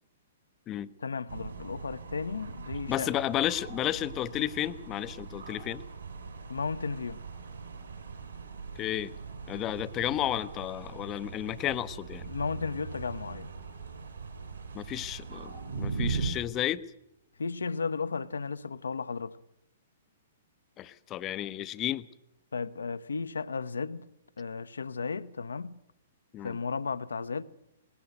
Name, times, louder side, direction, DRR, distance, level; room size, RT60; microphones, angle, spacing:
voice 1, 1.0-3.1 6.5-7.2 12.3-13.5 17.4-19.4 22.5-24.1 24.4-25.8 26.4-27.4, left 5 dB, 70° left, 0.8 m, -34 dB
sound 1, 1.3-16.3, right 5 dB, 70° right, 5.1 m, -40 dB
voice 2, 2.9-5.8 8.8-9.1 9.5-12.3 14.7-16.8 20.8-22.1 26.3-26.6, left 12 dB, 25° left, 0.7 m, -32 dB
19.5 x 18.5 x 7.9 m
figure-of-eight pair, 115°, 0 cm